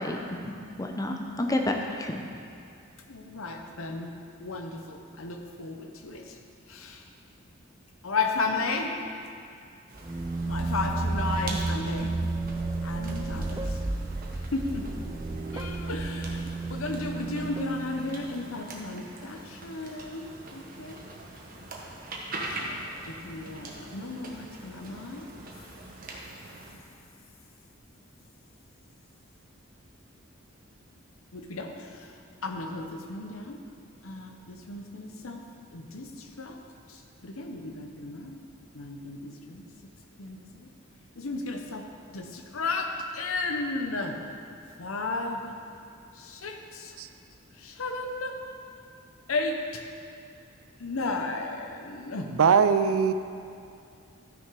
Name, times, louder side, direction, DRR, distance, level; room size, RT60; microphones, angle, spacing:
voice 1, 0.0-2.2, left 1 dB, 15° left, 2 dB, 0.7 m, -30 dB
voice 2, 3.1-4.1 4.4-6.4 6.7-7.1 8.0-8.9 10.5-12.2 12.8-13.9 14.3-15.1 15.5-21.1 22.6-22.8 23.0-25.4 31.3-33.6 34.0-35.4 35.7-36.6 36.9-38.4 38.7-39.7 40.2-40.7 41.2-44.2 44.8-45.6 46.1-47.0 47.5-48.4 49.3-49.8 50.8-52.4 52.7-52.9, left 3 dB, 75° left, 4 dB, 1.0 m, -34 dB
sound 1, 9.9-26.7, right 2 dB, 40° right, 1.3 m, -43 dB
sound 2, 10.0-18.5, right 2 dB, 15° right, 0.4 m, -32 dB
voice 3, 52.4-53.1, right 6 dB, 85° right, 10 dB, 0.5 m, -20 dB
13.0 x 6.4 x 4.8 m, 2.5 s
head